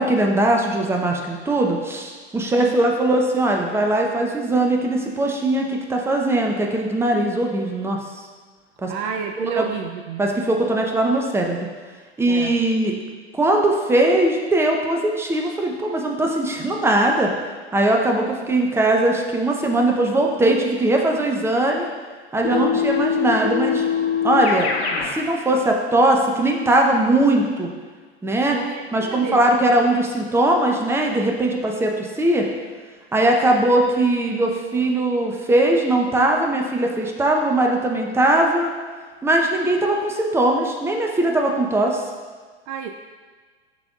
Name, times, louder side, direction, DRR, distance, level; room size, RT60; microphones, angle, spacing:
voice 1, 0.0-8.0 8.8-8.9 9.4-9.6 10.2-11.7 12.2-12.9 13.3-17.3 17.7-21.9 22.3-23.8 24.2-24.7 25.1-27.7 28.2-28.6 28.9-32.5 33.1-38.7 39.2-42.0, right 1 dB, 10° right, 1 dB, 0.7 m, -20 dB
voice 2, 2.4-2.8 8.9-10.2 12.3-12.6 22.5-22.8 28.5-29.4 42.7-42.9, right 7 dB, 50° right, 4 dB, 0.5 m, -30 dB
Keyboard (musical), 22.4-25.2, left 7 dB, 75° left, 1.0 m, -23 dB
10.5 x 3.8 x 2.4 m, 1.5 s
hypercardioid pair, 90°, 32 cm